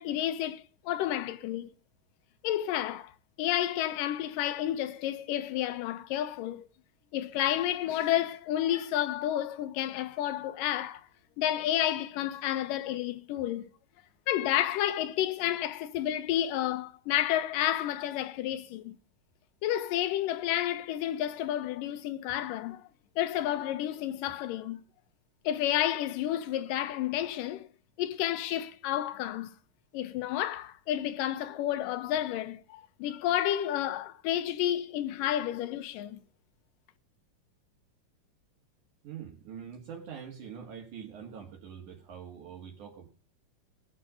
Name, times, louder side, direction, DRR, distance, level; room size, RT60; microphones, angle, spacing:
voice 1, 0.0-1.7 2.4-3.1 3.4-6.7 7.1-11.1 11.4-13.7 14.3-19.0 19.6-22.8 23.2-24.8 25.4-27.7 28.0-29.5 29.9-36.2, left 12 dB, 85° left, 2.6 m, -30 dB
voice 2, 39.0-43.1, right 7 dB, 65° right, 3.4 m, -44 dB
21.0 x 7.8 x 5.1 m
omnidirectional pair, 3.8 m